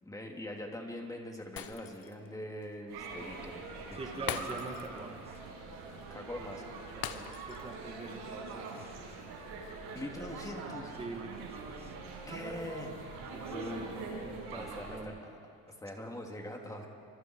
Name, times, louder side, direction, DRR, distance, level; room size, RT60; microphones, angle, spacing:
voice 1, 0.0-4.5 6.1-6.7 9.9-11.0 12.3-12.9 13.5-15.4 15.7-16.9, left 1 dB, 10° left, 1 dB, 3.1 m, -43 dB
Shatter, 1.6-2.3 2.6-2.7 4.3-5.0 5.3-5.5 7.0-7.7 8.1-8.2, left 10 dB, 60° left, 1.3 m, -41 dB
sound 1, 2.9-15.0, right 4 dB, 90° right, 7.0 m, -43 dB
voice 2, 3.9-5.4 6.9-9.2 11.0-11.9 13.3-13.8 14.2-15.2, right 2 dB, 15° right, 3 dB, 2.1 m, -45 dB
29.5 x 26.0 x 4.8 m, 2.4 s
cardioid pair, 130°, 38 cm